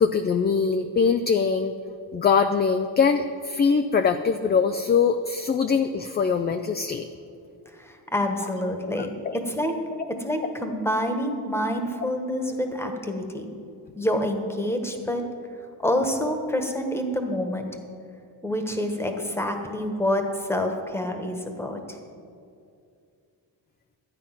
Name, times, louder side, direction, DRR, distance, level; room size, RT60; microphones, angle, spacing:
voice 1, 0.0-1.7 2.1-7.1 8.8-9.4, left 5 dB, 25° left, 7 dB, 0.3 m, -22 dB
voice 2, 7.7-9.1 9.5-9.7 10.2-13.5 13.9-15.2 15.8-17.7 18.4-22.0, left 1 dB, 5° left, 4 dB, 1.2 m, -27 dB
13.0 x 8.8 x 5.8 m, 2.5 s
cardioid pair, 130°, 43 cm